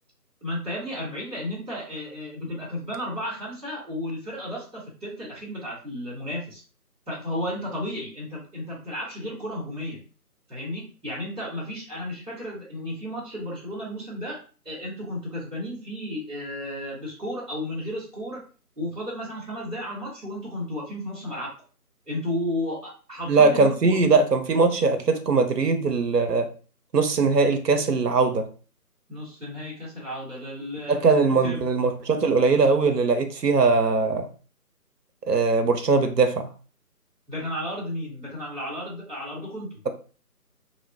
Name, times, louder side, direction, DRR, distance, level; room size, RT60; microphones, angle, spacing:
voice 1, 0.4-6.6 7.1-10.0 10.5-14.4 14.6-18.4 18.7-21.5 22.1-23.9 29.1-31.7 37.3-39.7, left 1 dB, 5° left, 1.2 m, -33 dB
voice 2, 23.3-26.5 26.9-28.5 30.9-34.3 35.3-36.5, right 4 dB, 90° right, 0.6 m, -20 dB
2.8 x 2.1 x 2.7 m
figure-of-eight pair, 160°, 47 cm